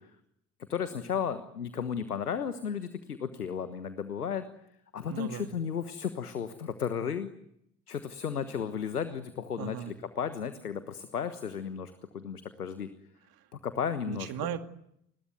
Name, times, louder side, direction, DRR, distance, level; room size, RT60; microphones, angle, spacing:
voice 1, 0.7-4.4 4.9-7.3 7.9-12.9 13.6-14.3, left 7 dB, 90° left, 11 dB, 1.4 m, -34 dB
voice 2, 5.1-5.5 9.6-9.9 14.0-14.6, right 10 dB, 55° right, 8 dB, 2.4 m, -36 dB
29.5 x 21.0 x 9.4 m, 0.78 s
figure-of-eight pair, 55°, 44 cm